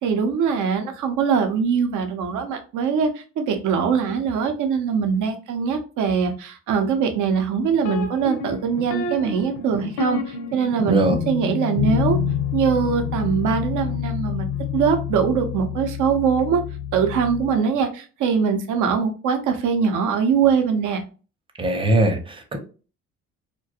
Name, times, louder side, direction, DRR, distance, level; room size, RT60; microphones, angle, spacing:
voice 1, 0.0-12.2 12.5-16.6 16.9-21.0, right 6 dB, 80° right, 6 dB, 0.6 m, -22 dB
sound 1, 7.8-17.6, left 8 dB, 85° left, 0.7 m, -28 dB
voice 2, 21.6-22.6, right 1 dB, 15° right, 5 dB, 0.6 m, -20 dB
2.3 x 2.2 x 2.7 m, 0.36 s
cardioid pair, 90°, 30 cm